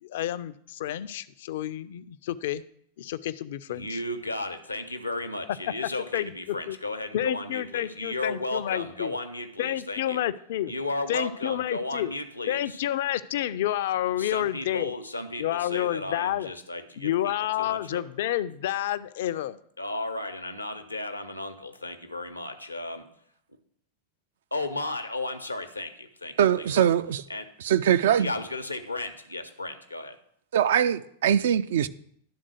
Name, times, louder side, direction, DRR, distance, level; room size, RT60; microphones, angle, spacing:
voice 1, 0.0-2.6 3.0-4.0 6.1-6.8 7.1-9.2 9.6-10.7 11.1-12.1 12.5-14.9 15.4-16.5 17.0-19.6, left 12 dB, 55° left, 0.4 m, -29 dB
voice 2, 3.7-10.2 10.7-12.8 14.2-18.0 19.8-23.1 24.5-26.4 26.7-26.9 27.3-27.4 28.2-30.2, left 2 dB, 85° left, 0.7 m, -34 dB
voice 3, 26.4-27.2 27.6-28.3 30.5-31.9, right 9 dB, 60° right, 0.3 m, -22 dB
11.5 x 3.8 x 6.2 m
figure-of-eight pair, 90°, 0 cm